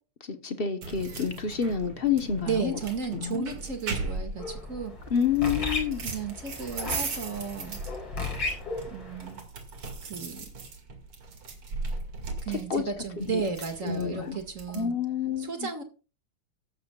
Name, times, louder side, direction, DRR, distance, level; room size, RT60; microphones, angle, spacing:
voice 1, 0.2-2.8 3.1-3.4 5.1-6.0 12.5-12.8 13.2-13.4 13.8-14.4 14.7-15.7, left 7 dB, 40° left, 0.9 m, -28 dB
sound 1, 0.8-14.8, right 3 dB, 75° right, 3.1 m, -38 dB
voice 2, 2.5-4.9 6.0-7.8 8.9-9.4 10.0-10.5 12.4-15.0 15.4-15.8, right 5 dB, 35° right, 2.3 m, -34 dB
sound 2, 4.4-9.3, left 3 dB, 70° left, 5.6 m, -35 dB
16.0 x 13.5 x 2.4 m
omnidirectional pair, 2.3 m